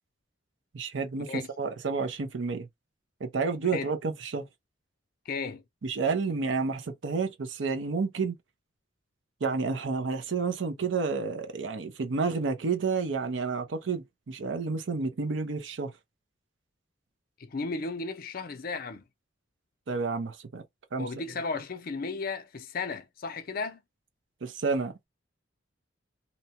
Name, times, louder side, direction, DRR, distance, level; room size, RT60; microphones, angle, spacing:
voice 1, 0.7-2.7 3.2-4.5 5.8-8.4 9.4-15.9 19.9-20.6 20.9-21.1 24.4-25.1, right 4 dB, 75° right, 0.6 m, -30 dB
voice 2, 5.3-5.6 17.4-19.0 21.0-23.8, left 4 dB, 50° left, 0.5 m, -34 dB
2.8 x 2.1 x 2.8 m
head